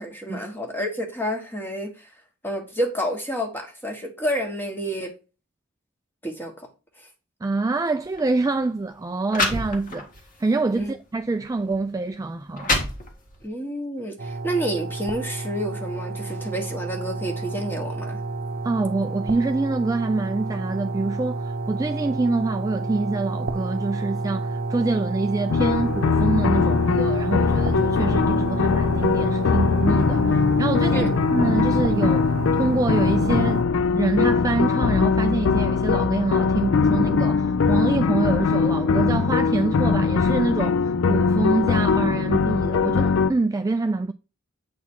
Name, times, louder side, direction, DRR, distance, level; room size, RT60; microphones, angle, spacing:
voice 1, 0.0-2.1 2.4-5.1 6.2-6.7 10.7-10.9 13.4-18.2 30.9-31.1, equal, 10° left, 1.5 m, -29 dB
voice 2, 7.4-10.1 10.4-12.7 18.6-32.3 32.6-33.6 33.9-44.1, right 3 dB, 15° right, 0.3 m, -25 dB
sound 1, 8.0-8.2 9.0-9.1 9.3-10.2 10.8-10.9 11.7-11.8 12.3-13.5, left 2 dB, 40° left, 1.6 m, -26 dB
sound 2, 14.2-33.6, right 3 dB, 45° right, 0.8 m, -30 dB
sound 3, 25.5-43.3, left 5 dB, 65° left, 0.4 m, -21 dB
8.3 x 4.1 x 4.5 m
head